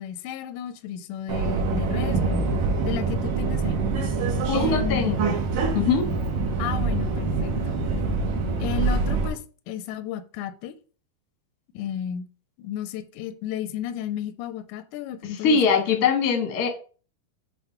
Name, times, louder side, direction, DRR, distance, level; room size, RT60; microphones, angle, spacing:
voice 1, 0.0-2.5 2.8-3.8 4.5-5.4 5.8-6.0 6.6-7.8 8.6-9.4 9.7-10.7 11.7-12.3 12.6-16.1, left 10 dB, 85° left, 1.9 m, -33 dB
Subway metro underground, 1.3-9.3, right 4 dB, 70° right, 2.7 m, -25 dB
voice 2, 4.5-5.3 5.7-6.0 15.4-16.7, left 6 dB, 60° left, 0.9 m, -22 dB
7.7 x 2.6 x 5.7 m
omnidirectional pair, 4.3 m